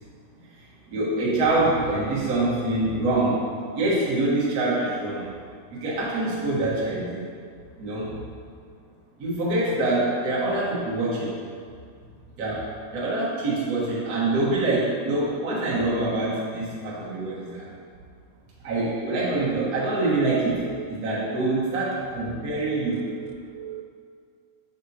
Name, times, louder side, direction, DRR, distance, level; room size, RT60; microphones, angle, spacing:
voice 1, 0.9-3.5 3.7-5.3 5.7-7.2 7.8-8.2 9.2-11.3 12.4-17.7 18.6-23.1, right 2 dB, 55° right, -7 dB, 1.0 m, -25 dB
voice 2, 19.9-20.3 20.6-21.4 22.6-23.8, right 11 dB, 90° right, 2 dB, 2.2 m, -39 dB
6.5 x 5.3 x 2.8 m, 2.1 s
omnidirectional pair, 3.6 m